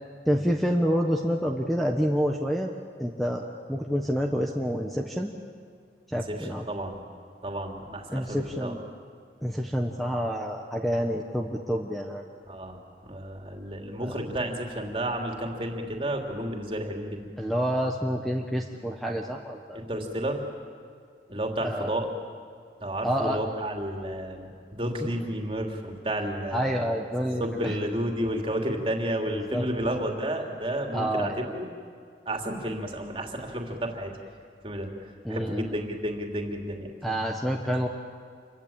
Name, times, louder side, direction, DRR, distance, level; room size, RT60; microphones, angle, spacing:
voice 1, 0.3-2.7 3.0-5.3 6.1-6.6 8.1-8.8 9.4-12.2 14.0-14.2 17.4-19.8 21.6-21.9 23.0-23.4 25.0-25.1 26.5-27.8 29.3-29.7 30.9-31.4 35.2-35.8 37.0-37.9, equal, ahead, 1 dB, 1.2 m, -28 dB
voice 2, 6.1-7.0 7.4-8.7 12.5-17.3 19.7-20.4 21.3-22.1 22.8-26.7 27.4-31.7 32.2-34.1 34.6-34.9 35.3-36.9, right 1 dB, 30° right, 2 dB, 3.1 m, -31 dB
28.5 x 23.5 x 8.9 m, 2.2 s
head